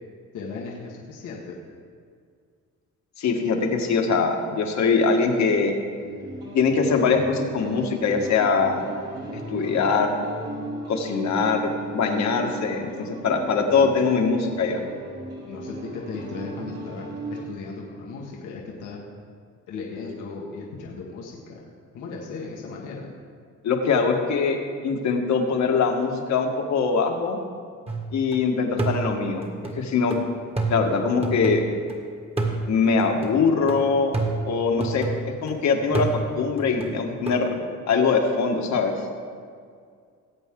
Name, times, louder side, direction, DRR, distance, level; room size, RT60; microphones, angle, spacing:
voice 1, 0.3-1.6 15.5-19.0 19.7-21.6 21.9-23.1, left 4 dB, 90° left, -3 dB, 1.7 m, -36 dB
voice 2, 3.2-5.7 6.5-8.9 9.5-10.1 10.9-14.8 23.6-24.6 24.8-27.4 28.1-29.4 29.8-30.2 30.7-31.6 32.7-34.1 34.4-36.1 36.4-37.6 37.9-38.9, left 5 dB, 65° left, 3 dB, 1.7 m, -22 dB
sound 1, 6.0-17.4, right 1 dB, 55° right, 3.2 m, -35 dB
sound 2, 27.9-28.4 28.8-31.9 32.4-35.5 35.9-37.4, right 3 dB, 20° right, 1.9 m, -30 dB
19.0 x 8.2 x 3.8 m, 2.1 s
cardioid pair, 90°, 30 cm